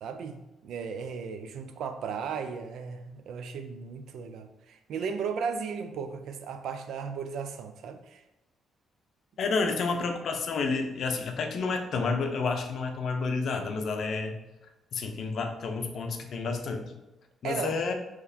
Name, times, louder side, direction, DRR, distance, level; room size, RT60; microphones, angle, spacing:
voice 1, 0.0-8.2 17.4-17.8, right 6 dB, 75° right, 9 dB, 0.3 m, -36 dB
voice 2, 9.4-14.4 14.9-16.9 17.4-17.9, left 4 dB, 60° left, 5 dB, 0.5 m, -30 dB
3.9 x 2.9 x 2.7 m, 0.99 s
cardioid pair, 90°, 0 cm